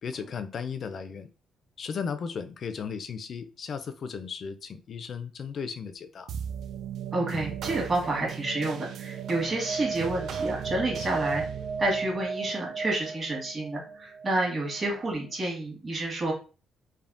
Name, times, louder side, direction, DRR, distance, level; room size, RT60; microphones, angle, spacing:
voice 1, 0.0-1.3 1.8-6.3, left 6 dB, 55° left, 0.4 m, -35 dB
sound 1, 6.3-15.0, right 6 dB, 75° right, 0.3 m, -35 dB
voice 2, 7.1-11.4 11.8-16.3, right 2 dB, 35° right, 1.4 m, -29 dB
3.4 x 2.1 x 2.5 m
cardioid pair, 90°, 0 cm